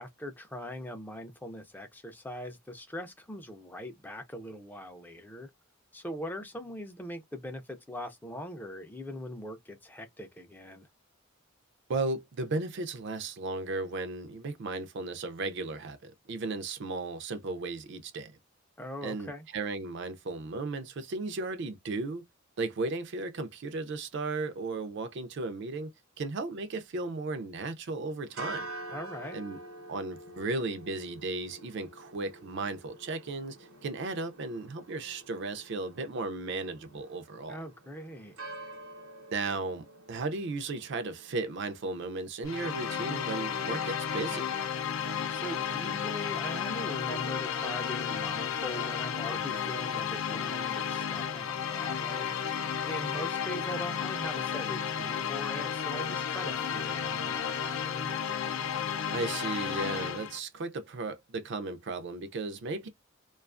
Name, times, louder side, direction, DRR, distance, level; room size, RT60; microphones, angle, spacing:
voice 1, 0.0-5.5 5.9-10.9 18.8-19.5 28.9-29.4 37.5-38.4 45.0-58.1, left 1 dB, 10° left, 0.4 m, -41 dB
voice 2, 11.9-18.3 19.0-22.2 22.6-25.9 26.2-28.7 29.3-29.6 29.9-33.6 33.8-37.6 39.3-44.5 59.1-62.9, right 3 dB, 60° right, 0.4 m, -35 dB
sound 1, 28.2-42.1, right 2 dB, 90° right, 0.8 m, -47 dB
sound 2, 42.4-60.4, left 7 dB, 75° left, 0.5 m, -33 dB
2.3 x 2.3 x 2.3 m
head